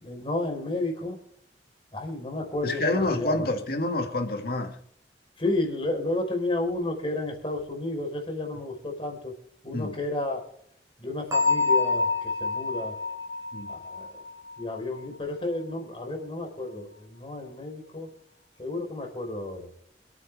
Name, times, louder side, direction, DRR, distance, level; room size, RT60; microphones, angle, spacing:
voice 1, 0.0-1.2 1.9-3.4 5.4-9.3 9.6-10.4 11.0-12.9 13.7-14.1 14.6-18.1 18.6-19.7, left 2 dB, 30° left, 4.8 m, -31 dB
voice 2, 2.6-4.8 9.7-10.0 13.5-13.8, left 2 dB, 55° left, 2.5 m, -28 dB
Bell, 11.3-15.0, left 4 dB, 20° right, 4.0 m, -27 dB
28.0 x 9.5 x 3.7 m
head